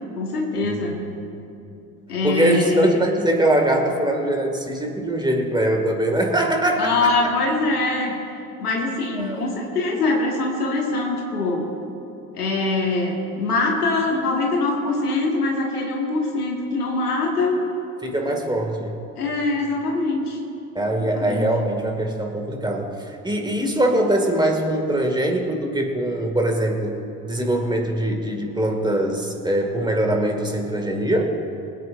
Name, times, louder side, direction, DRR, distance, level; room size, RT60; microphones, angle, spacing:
voice 1, 0.1-1.0 2.1-3.0 6.8-8.2 8.6-11.7 12.3-17.6 19.2-20.4 21.0-21.4, left 2 dB, 75° left, 0 dB, 2.0 m, -23 dB
voice 2, 2.2-7.3 9.1-9.6 18.0-18.9 20.7-27.0 27.2-31.4, right 1 dB, 10° right, 2 dB, 2.2 m, -22 dB
24.0 x 9.3 x 2.6 m, 2.7 s
figure-of-eight pair, 55°, 46 cm